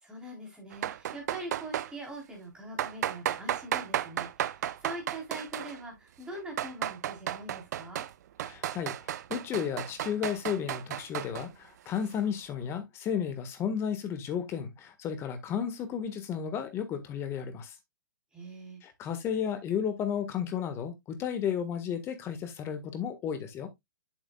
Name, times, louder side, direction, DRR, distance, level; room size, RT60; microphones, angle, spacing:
voice 1, 0.0-8.0 18.3-18.8, right 1 dB, 5° right, 3.9 m, -43 dB
sound 1, 0.7-1.9 2.8-5.8 6.3-8.1 8.4-11.5, right 11 dB, 55° right, 0.6 m, -33 dB
voice 2, 8.4-8.9 9.3-17.7 18.8-23.7, left 8 dB, 25° left, 1.6 m, -33 dB
7.9 x 7.5 x 2.3 m
hypercardioid pair, 135°, 11 cm